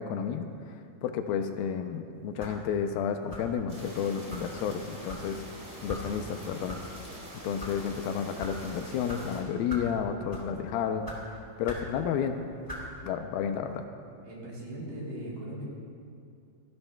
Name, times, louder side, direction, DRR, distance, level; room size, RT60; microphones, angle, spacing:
voice 1, 0.0-5.5 5.8-6.8 7.4-12.4 13.0-13.8, left 7 dB, 80° left, 7 dB, 2.4 m, -31 dB
sound 1, 2.4-2.6 3.3-3.6 4.3-4.5 5.1-5.3 5.9-6.0 6.7-6.8 7.4-7.7 8.4-8.5 9.1-9.2 9.7-9.9 10.3-10.5 11.0-11.2 11.6-11.9 12.7-12.9, equal, 10° left, 1.4 m, -40 dB
sound 2, 3.7-9.4, equal, 15° right, 3.2 m, -45 dB
voice 2, 14.2-15.6, right 1 dB, 70° right, -4 dB, 5.0 m, -39 dB
27.5 x 11.5 x 2.3 m, 2.4 s
omnidirectional pair, 4.3 m